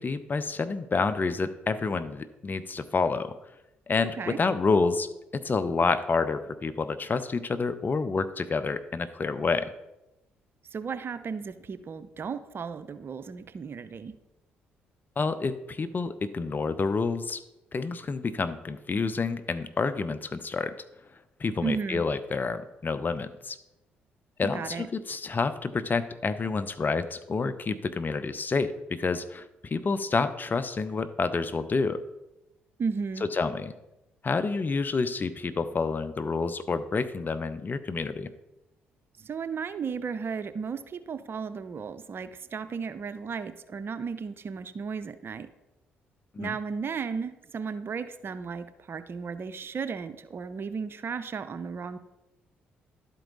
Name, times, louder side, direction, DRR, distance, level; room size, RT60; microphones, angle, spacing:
voice 1, 0.0-3.3 3.9-9.7 15.2-17.4 17.7-20.7 21.4-23.6 24.4-32.0 33.2-33.7 34.2-38.3 46.3-46.5, left 4 dB, 35° left, 11 dB, 0.7 m, -28 dB
voice 2, 10.7-14.1 21.6-22.0 24.4-24.9 32.8-33.2 39.2-45.5 46.4-52.0, right 5 dB, 45° right, 11 dB, 0.6 m, -34 dB
11.5 x 4.6 x 4.0 m, 0.94 s
hypercardioid pair, 50°, 5 cm